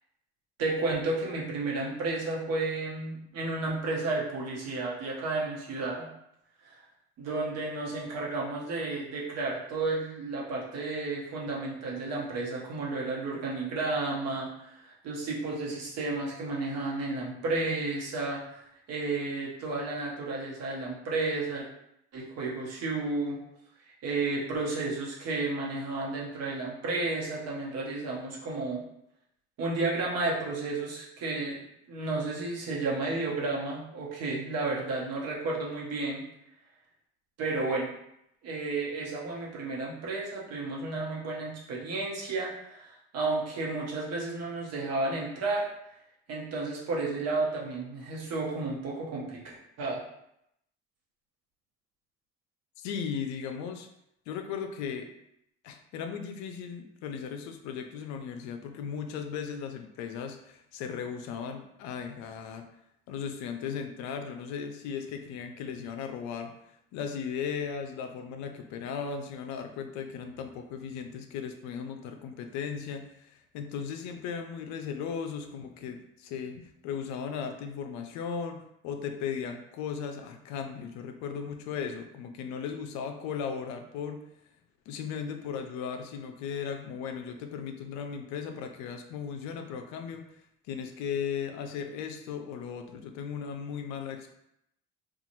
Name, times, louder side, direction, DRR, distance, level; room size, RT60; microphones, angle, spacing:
voice 1, 0.6-6.1 6.6-6.8 7.2-18.6 18.9-21.7 22.1-23.4 24.0-28.8 29.6-31.6 31.9-36.2 37.4-37.9 38.4-45.7 46.3-50.0, right 3 dB, 60° right, -3 dB, 1.0 m, -32 dB
voice 2, 52.8-53.9 54.3-55.1 55.6-62.7 63.1-66.5 66.9-84.2 84.9-90.2 90.7-94.4, left 7 dB, 70° left, 5 dB, 0.5 m, -37 dB
2.8 x 2.4 x 2.7 m, 0.78 s
hypercardioid pair, 70°, 30 cm